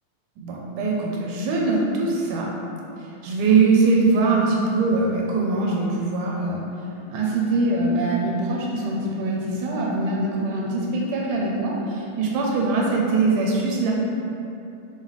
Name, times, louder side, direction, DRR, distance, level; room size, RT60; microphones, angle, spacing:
voice 1, 0.4-2.5 3.0-6.6 7.1-13.9, right 3 dB, 85° right, -2 dB, 2.2 m, -22 dB
5.9 x 5.6 x 3.2 m, 2.7 s
omnidirectional pair, 3.6 m